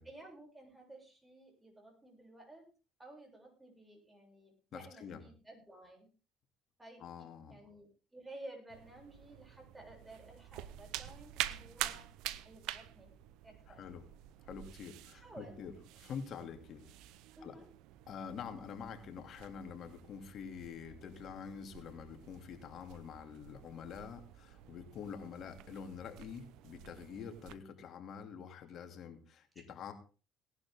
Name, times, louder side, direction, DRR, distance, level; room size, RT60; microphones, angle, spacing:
voice 1, 0.0-2.6 3.0-6.1 6.8-12.1 12.3-13.1 13.4-13.8 15.1-15.6 17.4-17.7 29.5-29.7, right 1 dB, 15° right, 1 dB, 7.3 m, -54 dB
voice 2, 4.7-5.2 7.0-7.6 13.7-14.0 14.4-16.8 17.4-17.6 18.1-29.9, left 7 dB, 60° left, 6 dB, 2.7 m, -46 dB
sound 1, 8.7-27.6, right 14 dB, 80° right, 0.8 m, -47 dB
18.5 x 11.5 x 3.7 m, 0.35 s
supercardioid pair, 85°, 0 cm